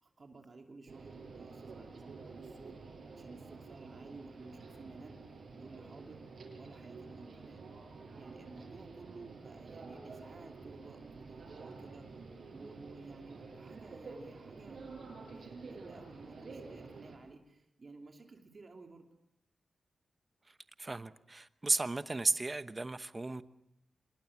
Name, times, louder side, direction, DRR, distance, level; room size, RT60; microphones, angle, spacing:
voice 1, 0.0-2.8 3.1-6.2 6.5-7.6 8.1-12.1 12.5-19.0, right 3 dB, 40° right, 2.9 m, -53 dB
sound 1, 0.9-17.2, right 4 dB, 65° right, 6.9 m, -50 dB
voice 2, 20.8-23.4, right 2 dB, 25° right, 0.9 m, -34 dB
26.5 x 22.0 x 7.2 m
wide cardioid pair, 130°, 0 cm